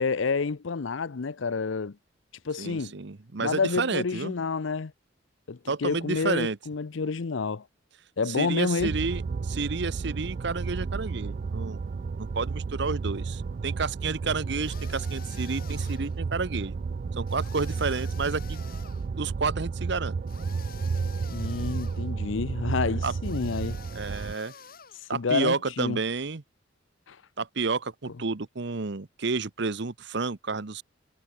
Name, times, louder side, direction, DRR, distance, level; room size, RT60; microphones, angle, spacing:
voice 1, 0.0-2.0 2.4-2.9 3.4-4.9 5.5-7.6 8.2-9.0 21.3-23.8 25.1-26.0 27.1-27.2, left 4 dB, 85° left, 0.6 m, -29 dB
voice 2, 2.6-4.3 5.7-6.6 8.3-11.8 12.2-16.8 17.2-18.6 19.2-20.2 23.0-23.1 23.9-24.5 25.1-26.4 27.4-30.8, right 4 dB, 65° right, 0.9 m, -30 dB
sound 1, 8.8-24.3, right 4 dB, 45° right, 0.3 m, -32 dB
sound 2, 14.6-16.2 17.3-19.1 20.3-22.1 23.2-25.1, left 6 dB, 50° left, 3.0 m, -48 dB
head